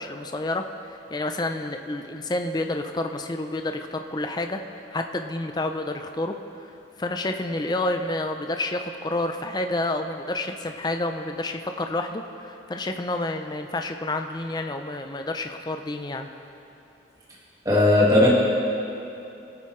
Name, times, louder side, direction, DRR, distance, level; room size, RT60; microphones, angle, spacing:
voice 1, 0.0-4.6 4.9-6.3 7.0-16.3, left 2 dB, 20° left, 6 dB, 0.4 m, -29 dB
voice 2, 17.7-18.3, left 1 dB, 20° right, -5 dB, 1.7 m, -17 dB
18.0 x 8.7 x 3.1 m, 2.8 s
head